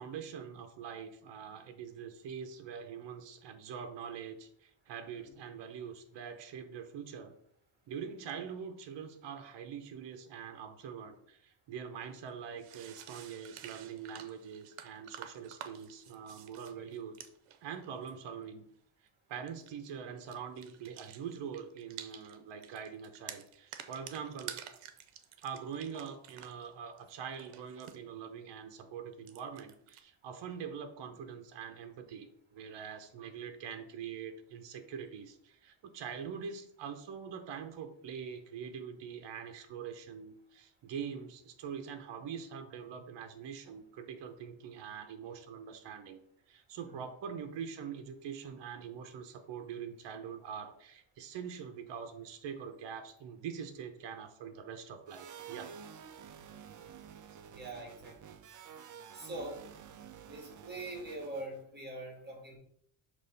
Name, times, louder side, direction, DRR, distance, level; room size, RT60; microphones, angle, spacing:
voice 1, 0.0-7.3 7.9-17.2 17.6-18.6 19.3-24.6 25.4-46.2 46.5-55.7, right 7 dB, 60° right, 6 dB, 0.8 m, -44 dB
sound 1, 12.2-12.3 12.6-18.1 19.5-19.9 20.2-22.4 22.6-26.7 27.0-28.0 29.1-30.0, right 10 dB, 90° right, 0.8 m, -50 dB
sound 2, 55.1-61.6, right 8 dB, 40° right, 0.4 m, -51 dB
voice 2, 57.5-58.4 59.1-59.6 60.3-62.6, right 1 dB, 20° right, 0 dB, 1.7 m, -43 dB
6.0 x 3.1 x 5.4 m, 0.69 s
cardioid pair, 175°, 49 cm